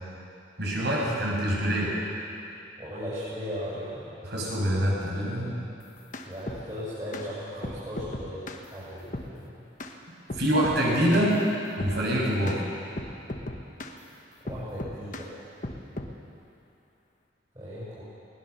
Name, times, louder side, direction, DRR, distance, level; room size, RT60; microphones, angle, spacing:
voice 1, 0.6-1.9 4.2-5.5 10.3-11.4 11.8-12.6, equal, 55° right, -4 dB, 6.4 m, -25 dB
voice 2, 2.8-4.1 6.2-8.4 8.7-9.3 14.4-15.3 17.5-18.0, equal, 25° right, -11 dB, 6.9 m, -37 dB
sound 1, 5.8-6.7 7.1-7.3 7.6-8.6 9.1-9.3 9.8-10.0 10.3-10.8 11.1-11.3 11.8-12.0 12.5-12.6 13.0-14.0 14.5-15.3 15.6-16.2, left 1 dB, 40° left, 1.3 m, -37 dB
20.5 x 19.5 x 6.9 m, 2.7 s
head